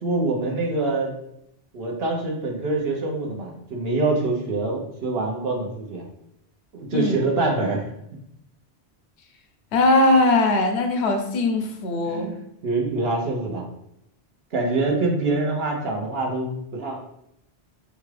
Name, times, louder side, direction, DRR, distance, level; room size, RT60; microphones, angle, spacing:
voice 1, 0.0-1.2 1.7-6.0 6.7-7.8 12.0-13.6 14.5-17.0, right 2 dB, 65° right, 0 dB, 1.1 m, -25 dB
voice 2, 9.7-12.3, left 2 dB, 80° left, 4 dB, 0.9 m, -20 dB
5.2 x 2.4 x 3.2 m, 0.79 s
omnidirectional pair, 1.1 m